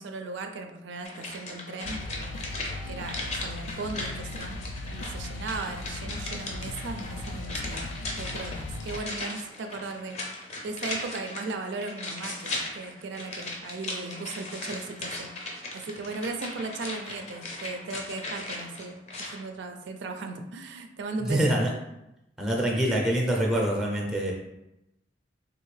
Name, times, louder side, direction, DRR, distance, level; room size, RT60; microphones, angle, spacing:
voice 1, 0.0-2.3 2.9-4.6 4.9-7.9 8.2-10.2 10.6-19.0 19.3-21.4, right 3 dB, 70° right, 5 dB, 0.3 m, -37 dB
sound 1, 1.0-19.4 19.7-19.8, left 2 dB, 40° left, 0.6 m, -38 dB
sound 2, 1.8-9.0, left 2 dB, 90° left, 0.3 m, -38 dB
voice 2, 21.2-21.7 22.4-24.3, right 1 dB, 5° right, -1 dB, 0.5 m, -25 dB
3.5 x 2.5 x 3.2 m, 0.89 s
head